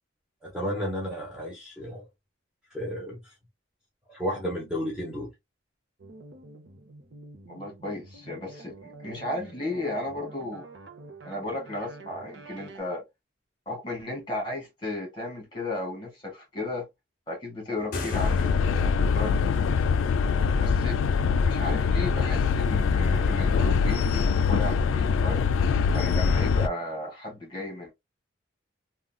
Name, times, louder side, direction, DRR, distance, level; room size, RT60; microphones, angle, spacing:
voice 1, 0.4-2.0 2.7-3.3 4.1-5.3 19.9-20.1, equal, 5° right, 0.8 m, -33 dB
sound 1, 6.0-12.8, right 3 dB, 65° right, 0.7 m, -47 dB
voice 2, 7.5-10.6 11.2-13.0 13.7-16.9 17.3-19.5 20.6-21.0 21.4-25.5 25.9-27.9, left 2 dB, 25° left, 1.7 m, -34 dB
sound 2, 17.8-19.1, left 3 dB, 45° left, 0.6 m, -37 dB
sound 3, 18.1-26.7, left 5 dB, 90° left, 0.3 m, -23 dB
3.7 x 2.2 x 2.2 m
head